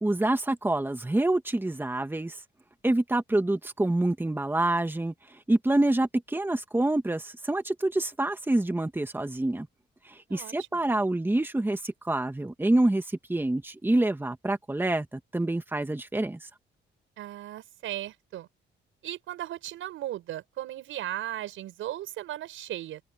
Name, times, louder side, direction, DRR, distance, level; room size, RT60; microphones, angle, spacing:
voice 1, 0.0-2.4 2.8-9.7 10.1-16.4, right 2 dB, 10° right, 2.0 m, -27 dB
voice 2, 10.3-10.8 17.2-18.5 19.0-23.0, right 13 dB, 85° right, 7.7 m, -37 dB
open air
cardioid pair, 90°, 20 cm